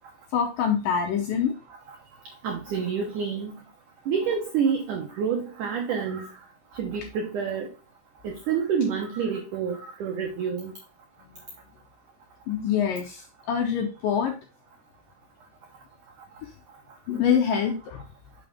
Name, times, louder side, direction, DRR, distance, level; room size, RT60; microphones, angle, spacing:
voice 1, 0.3-1.5 12.5-14.3 16.4-16.5 17.1-18.0, left 7 dB, 75° left, 2.1 m, -25 dB
voice 2, 2.4-3.5 4.1-6.3 6.7-7.7 8.2-10.7, right 6 dB, 85° right, 1.8 m, -28 dB
6.5 x 6.0 x 3.5 m
omnidirectional pair, 4.9 m